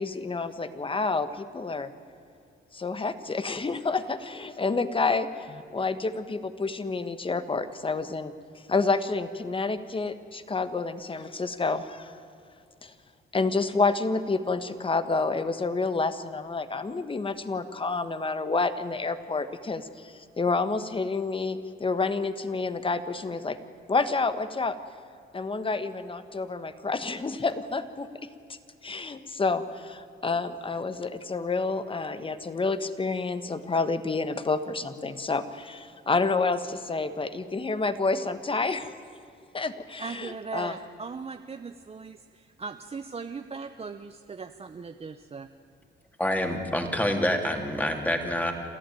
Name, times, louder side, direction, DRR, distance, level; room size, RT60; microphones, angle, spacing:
voice 1, 0.0-1.9 2.7-8.3 8.7-12.1 12.8-12.9 13.3-23.6 23.9-24.8 25.3-28.3 28.8-38.9 39.5-40.7, left 3 dB, 25° left, 11 dB, 1.4 m, -29 dB
voice 2, 40.0-45.5, right 5 dB, 30° right, 8 dB, 0.8 m, -39 dB
voice 3, 46.2-48.5, left 1 dB, 10° left, 3 dB, 2.8 m, -27 dB
27.5 x 14.0 x 9.2 m, 2.5 s
cardioid pair, 90°, 20 cm